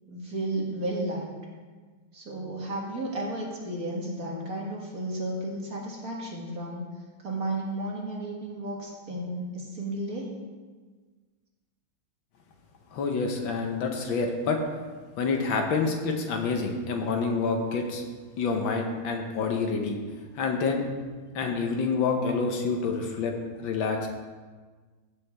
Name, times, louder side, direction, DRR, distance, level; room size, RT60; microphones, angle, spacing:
voice 1, 0.1-1.3 2.1-6.9 7.2-10.3, right 1 dB, 45° right, -2 dB, 1.8 m, -33 dB
voice 2, 12.9-14.6 15.2-18.0 18.4-20.0 20.4-20.8 21.4-24.1, left 4 dB, 70° left, 3 dB, 1.7 m, -27 dB
15.5 x 6.6 x 3.5 m, 1.4 s
omnidirectional pair, 2.3 m